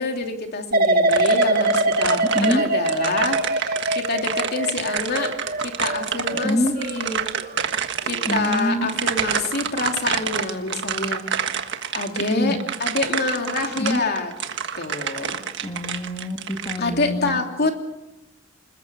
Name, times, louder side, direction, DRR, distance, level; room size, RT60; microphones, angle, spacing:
voice 1, 0.0-5.3 5.6-7.3 8.0-11.2 11.9-15.4 16.8-17.7, left 3 dB, 55° left, 3 dB, 3.0 m, -27 dB
sound 1, 0.7-7.7 8.1-8.5, right 2 dB, 45° right, 1.6 m, -23 dB
sound 2, 1.1-16.8, right 7 dB, 60° right, 1.5 m, -28 dB
voice 2, 6.4-6.7 8.3-8.9 12.3-12.6 13.7-14.0 15.6-17.4, equal, 20° left, 3 dB, 1.9 m, -25 dB
26.5 x 21.0 x 7.1 m, 1.0 s
head